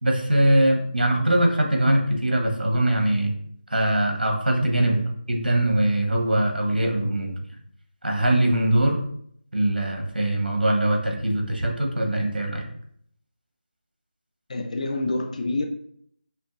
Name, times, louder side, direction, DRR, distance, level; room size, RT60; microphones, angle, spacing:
voice 1, 0.0-3.3 3.7-5.0 5.3-7.4 8.0-9.0 9.5-12.7, right 1 dB, 80° right, 2 dB, 1.1 m, -22 dB
voice 2, 14.5-15.6, left 2 dB, 50° left, 4 dB, 0.4 m, -27 dB
5.4 x 2.9 x 2.6 m, 0.67 s
figure-of-eight pair, 165°, 5 cm